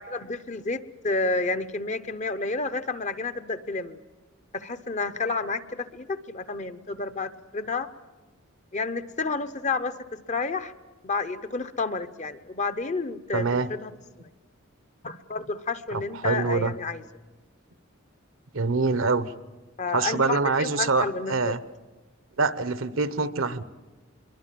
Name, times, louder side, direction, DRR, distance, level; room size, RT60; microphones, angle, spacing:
voice 1, 0.0-4.0 4.5-7.9 8.7-10.7 11.0-13.9 15.0-17.0 19.8-21.5, left 3 dB, 35° left, 12 dB, 0.8 m, -30 dB
voice 2, 13.3-13.7 15.9-16.7 18.5-19.3 19.9-21.6 22.4-23.6, right 4 dB, 70° right, 15 dB, 0.9 m, -25 dB
24.0 x 23.0 x 7.6 m, 1.3 s
head